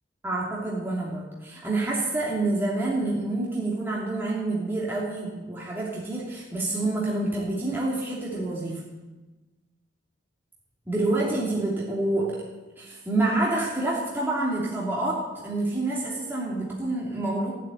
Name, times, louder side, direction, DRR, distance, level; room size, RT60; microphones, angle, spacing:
voice 1, 0.2-8.8 10.9-12.4 12.8-17.5, right 2 dB, 10° right, -6 dB, 2.8 m, -27 dB
15.0 x 8.3 x 9.7 m, 1.2 s
head